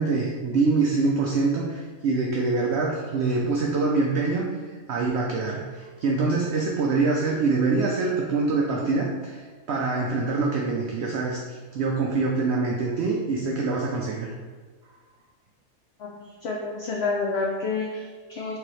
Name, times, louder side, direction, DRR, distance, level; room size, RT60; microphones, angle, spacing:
voice 1, 0.0-4.5 4.9-14.3, right 3 dB, 65° right, -2 dB, 0.6 m, -25 dB
voice 2, 16.0-18.6, left 3 dB, 70° left, -1 dB, 0.6 m, -29 dB
4.7 x 2.9 x 3.1 m, 1.4 s
omnidirectional pair, 1.6 m